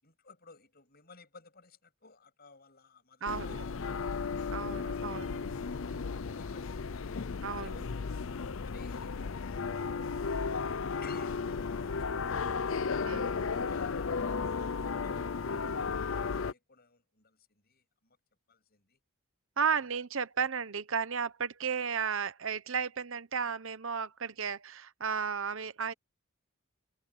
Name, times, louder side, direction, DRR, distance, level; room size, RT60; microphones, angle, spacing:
voice 1, 0.0-4.1 4.8-7.0 7.5-7.9 8.6-9.2 11.0-13.4 15.7-18.2 18.5-19.0 19.6-19.8, left 5 dB, 45° left, 7.7 m, -58 dB
voice 2, 3.2-3.7 4.5-5.2 7.4-7.8 13.0-13.4 19.6-25.9, right 6 dB, 60° right, 0.9 m, -34 dB
sound 1, 3.3-16.5, left 5 dB, 60° left, 0.6 m, -34 dB
head